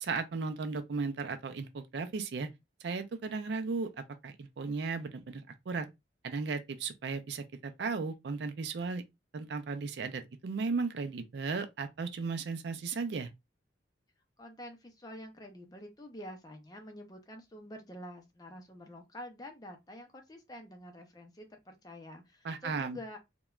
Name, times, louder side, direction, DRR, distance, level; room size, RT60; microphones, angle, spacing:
voice 1, 0.0-2.5 2.8-5.9 6.2-9.0 9.3-13.3 22.4-23.0, right 4 dB, 70° right, 0.4 m, -35 dB
voice 2, 14.4-23.2, left 1 dB, 20° left, 0.5 m, -48 dB
3.0 x 2.2 x 2.3 m
head